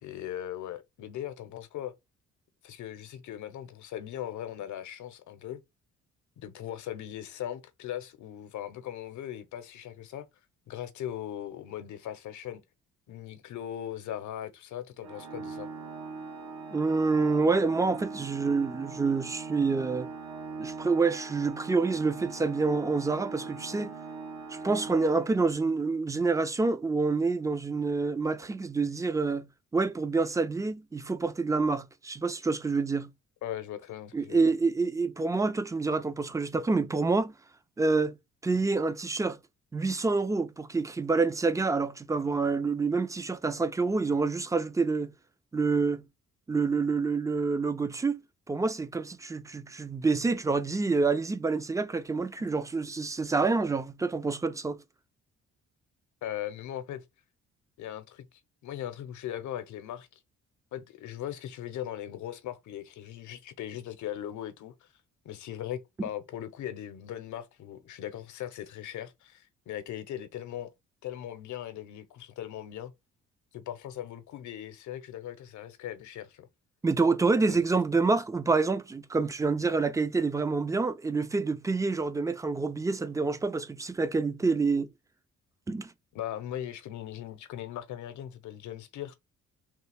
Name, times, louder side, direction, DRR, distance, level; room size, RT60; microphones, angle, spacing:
voice 1, 0.0-1.9 2.6-5.6 6.4-10.3 10.7-12.6 13.1-15.7 33.4-34.5 56.2-57.0 57.8-60.2 60.7-64.9 65.2-70.7 71.0-72.9 73.5-76.5 77.4-77.6 86.1-89.1, left 11 dB, 75° left, 0.7 m, -39 dB
Organ, 15.0-25.8, right 4 dB, 65° right, 0.8 m, -41 dB
voice 2, 16.7-20.1 20.6-23.9 24.5-29.5 29.7-33.1 34.1-37.3 37.8-38.1 38.4-39.4 39.7-45.1 45.5-46.0 46.5-48.2 48.5-54.8 66.0-66.1 76.8-84.9 85.7-85.9, right 4 dB, 10° right, 0.4 m, -27 dB
3.2 x 2.4 x 3.3 m
cardioid pair, 90°, 30 cm